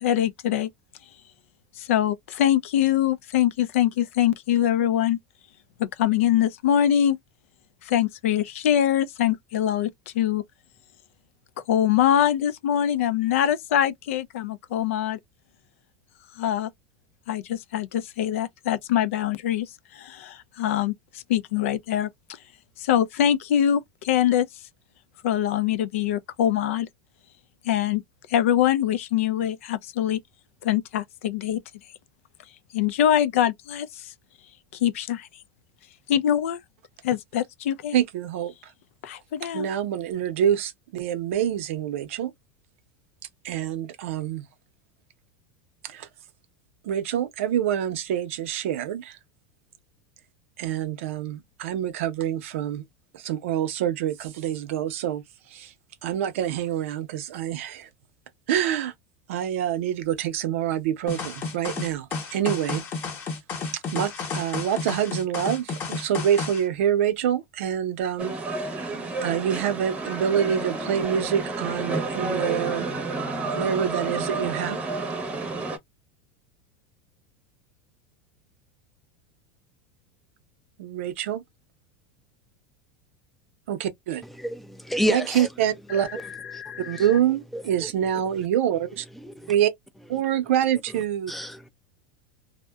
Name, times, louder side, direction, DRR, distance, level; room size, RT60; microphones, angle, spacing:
voice 1, 0.0-0.7 1.8-5.2 5.8-7.2 7.9-10.4 11.7-15.2 16.4-16.7 17.3-20.9 21.3-22.1 22.8-24.5 25.2-26.9 27.7-28.0 28.3-30.2 30.6-31.6 32.7-34.1 34.8-35.3 36.1-36.6 37.0-38.0 39.0-39.7, left 10 dB, 85° left, 0.4 m, -23 dB
voice 2, 37.9-38.5 39.5-42.3 43.4-44.4 45.8-46.1 46.8-49.2 50.6-52.8 53.1-55.2 55.5-55.7 56.0-57.9 58.5-58.9 59.3-62.8 63.9-68.3 69.2-72.9 73.5-74.8 80.8-81.4 83.7-84.2 85.0-86.1 86.9-89.0 89.5-89.7 90.1-91.3, right 10 dB, 80° right, 0.6 m, -26 dB
sound 1, 61.1-66.6, left 4 dB, 30° left, 0.9 m, -32 dB
sound 2, 68.2-75.8, right 3 dB, 20° right, 0.7 m, -30 dB
voice 3, 84.4-85.5 86.5-86.8 87.5-87.6 89.2-89.5 91.3-91.7, equal, ahead, 0.3 m, -29 dB
sound 3, 85.5-85.6 85.9-87.2 88.2-88.3, left 9 dB, 60° left, 0.7 m, -39 dB
2.6 x 2.1 x 2.2 m
supercardioid pair, 145°, 7 cm